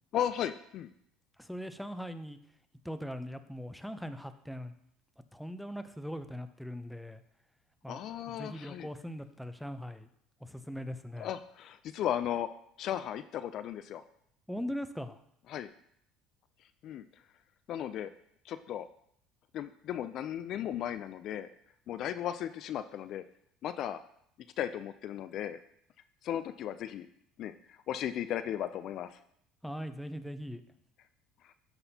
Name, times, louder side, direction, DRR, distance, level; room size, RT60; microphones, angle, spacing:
voice 1, 0.1-0.9 7.9-8.9 11.2-12.5 12.8-14.0 15.5-15.7 16.8-17.1 17.7-18.1 18.4-18.9 19.5-21.5 21.9-23.2 23.6-24.0 24.6-25.6 26.2-27.1 27.4-29.2 31.4-31.5, left 10 dB, 55° left, 11 dB, 0.3 m, -36 dB
voice 2, 1.4-2.4 2.8-4.7 5.3-7.2 7.8-10.1 10.4-11.3 14.5-15.2 29.6-30.6, equal, ahead, 9 dB, 0.6 m, -40 dB
12.0 x 4.1 x 2.8 m, 0.70 s
supercardioid pair, 85°, 0 cm